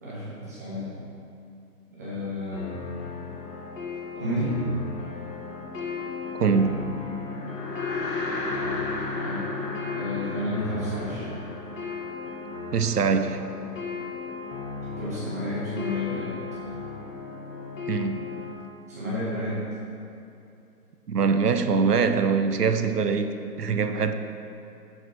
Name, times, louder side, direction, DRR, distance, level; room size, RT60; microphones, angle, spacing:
voice 1, 0.0-0.9 1.9-2.7 4.1-4.6 9.1-9.5 9.9-11.3 15.0-16.4 18.9-19.6, left 1 dB, 10° right, -9 dB, 1.1 m, -31 dB
sound 1, 2.5-18.5, left 5 dB, 50° left, 1.8 m, -36 dB
voice 2, 6.4-6.8 12.7-13.4 17.9-18.2 21.1-24.1, right 5 dB, 70° right, 9 dB, 0.8 m, -23 dB
sound 2, 7.3-12.7, left 2 dB, 85° left, 1.6 m, -34 dB
10.5 x 6.7 x 4.6 m, 2.7 s
hypercardioid pair, 170°, 49 cm